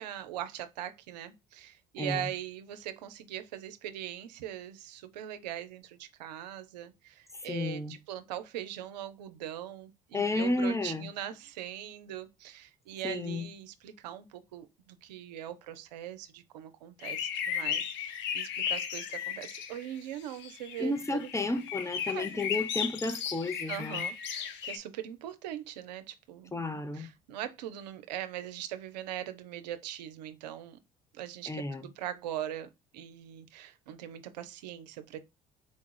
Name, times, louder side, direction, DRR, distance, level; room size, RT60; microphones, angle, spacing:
voice 1, 0.0-21.3 22.1-22.3 23.7-26.6 26.9-30.8 31.1-35.2, right 11 dB, 85° right, 0.5 m, -41 dB
voice 2, 2.0-2.3 7.3-7.9 10.1-11.1 13.0-13.5 20.8-24.0 26.5-27.1 31.5-31.9, left 2 dB, 15° left, 0.8 m, -32 dB
sound 1, 17.0-19.9 20.3-24.8, left 8 dB, 65° left, 0.6 m, -35 dB
4.2 x 2.4 x 4.5 m
hypercardioid pair, 60°, 21 cm